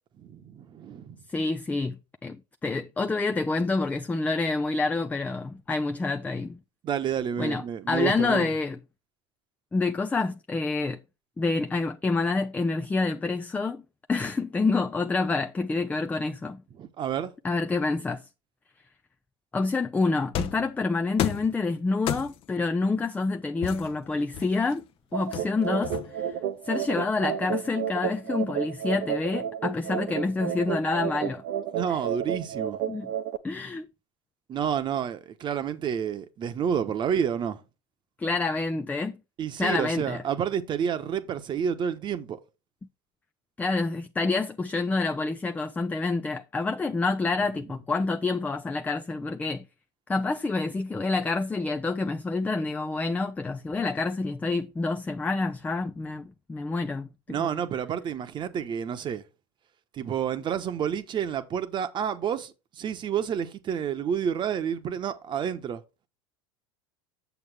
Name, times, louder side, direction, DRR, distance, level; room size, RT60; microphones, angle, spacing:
voice 1, 0.2-1.2 6.8-8.5 16.8-17.3 31.7-32.8 34.5-37.6 39.4-42.4 57.3-59.2 59.9-65.8, right 8 dB, 35° right, 1.1 m, -29 dB
voice 2, 1.3-2.0 2.2-2.4 2.6-6.6 7.4-8.8 9.7-11.0 11.4-13.8 14.1-16.6 17.4-18.3 19.5-24.8 25.1-26.4 26.6-31.4 32.9-33.1 33.4-33.9 38.2-39.2 39.6-40.2 43.6-49.7 50.1-57.6, left 3 dB, 10° left, 0.5 m, -27 dB
sound 1, 20.3-20.7 21.2-21.5 22.1-22.5 23.6-24.7 25.3-26.3, left 10 dB, 45° left, 0.8 m, -32 dB
sound 2, 25.1-33.4, right 9 dB, 65° right, 0.9 m, -31 dB
8.2 x 7.0 x 3.5 m
supercardioid pair, 110°, 13 cm